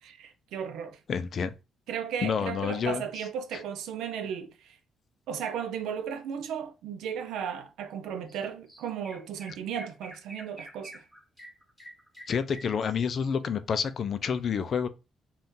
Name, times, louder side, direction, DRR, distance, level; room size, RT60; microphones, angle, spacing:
voice 1, 0.0-1.0 1.9-4.7 5.3-10.9, right 8 dB, 85° right, 0.5 m, -35 dB
voice 2, 1.1-1.5 2.2-3.0 3.5-3.6 12.3-14.9, left 6 dB, 55° left, 0.4 m, -29 dB
Chirp tweet, 8.3-8.4 8.7-13.3, right 1 dB, ahead, 1.2 m, -48 dB
2.6 x 2.3 x 3.6 m
cardioid pair, 90°, 0 cm